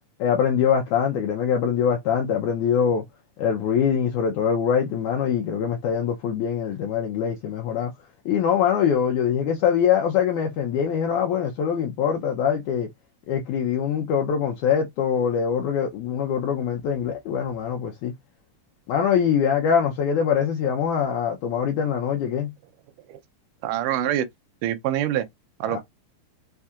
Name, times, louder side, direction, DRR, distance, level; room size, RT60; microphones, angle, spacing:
voice 1, 0.2-3.0 3.4-7.9 8.3-12.9 13.3-18.1 18.9-22.5 25.7-25.8, left 8 dB, 75° left, 1.9 m, -23 dB
voice 2, 23.6-24.3 24.6-25.3 25.6-25.8, right 11 dB, 80° right, 2.0 m, -25 dB
5.6 x 3.6 x 2.4 m
omnidirectional pair, 4.0 m